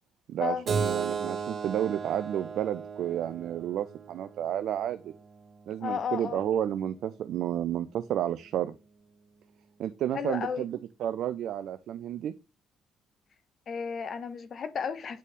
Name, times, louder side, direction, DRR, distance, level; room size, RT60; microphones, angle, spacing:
voice 1, 0.3-5.1 5.7-8.8 9.8-12.3, right 11 dB, 65° right, 0.4 m, -31 dB
Keyboard (musical), 0.7-5.8, right 6 dB, 50° right, 2.1 m, -35 dB
voice 2, 5.8-6.4 10.1-10.7 13.7-15.2, left 7 dB, 50° left, 0.7 m, -33 dB
8.8 x 4.1 x 3.5 m
hypercardioid pair, 55°, 0 cm